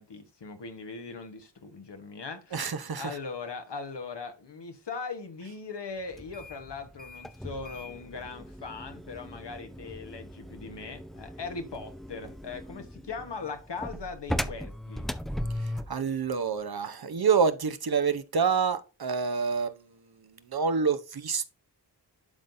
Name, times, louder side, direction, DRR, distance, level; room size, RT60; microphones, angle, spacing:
voice 1, 0.0-2.7 3.0-15.1, left 4 dB, 75° left, 1.4 m, -40 dB
voice 2, 2.5-3.2 15.6-19.9 20.5-21.4, right 5 dB, 60° right, 0.9 m, -27 dB
sound 1, 6.1-16.0, equal, ahead, 0.6 m, -38 dB
11.5 x 3.9 x 2.7 m
cardioid pair, 40°, 42 cm